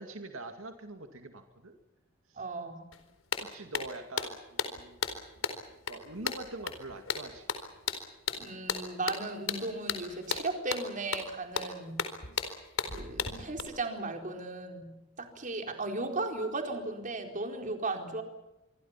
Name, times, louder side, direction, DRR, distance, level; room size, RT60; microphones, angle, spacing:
voice 1, 0.0-1.8 2.3-2.4 3.4-5.0 5.9-7.5, right 2 dB, 80° right, 5 dB, 2.4 m, -44 dB
voice 2, 2.4-2.8 8.4-12.0 12.9-14.9 15.2-18.2, right 2 dB, 40° right, 4 dB, 4.3 m, -36 dB
sound 1, 2.9-3.0 3.3-13.6, left 6 dB, 80° left, 4.2 m, -35 dB
27.0 x 24.5 x 5.9 m, 0.96 s
head